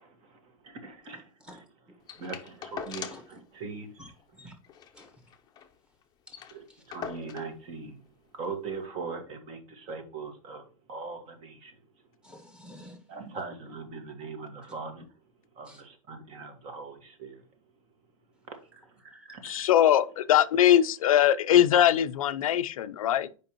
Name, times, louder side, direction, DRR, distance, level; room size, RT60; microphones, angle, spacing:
voice 1, 0.0-1.6 2.1-3.9 6.5-8.0 8.3-11.8 13.1-15.1 15.5-17.4 18.5-18.6 19.3-19.7, right 4 dB, 35° right, 1.7 m, -41 dB
sound 1, 2.1-3.4 3.7-3.8 4.1-4.2 4.6-5.7 6.0-6.1 6.3-7.6 8.4-8.5, left 7 dB, 25° left, 0.7 m, -42 dB
voice 2, 3.9-4.6 4.9-5.2 6.3-6.8 12.2-13.1 15.6-15.8 19.0-19.4, equal, 5° right, 1.5 m, -50 dB
voice 3, 19.4-23.3, left 11 dB, 85° left, 0.6 m, -22 dB
7.8 x 5.2 x 3.0 m
supercardioid pair, 140°, 17 cm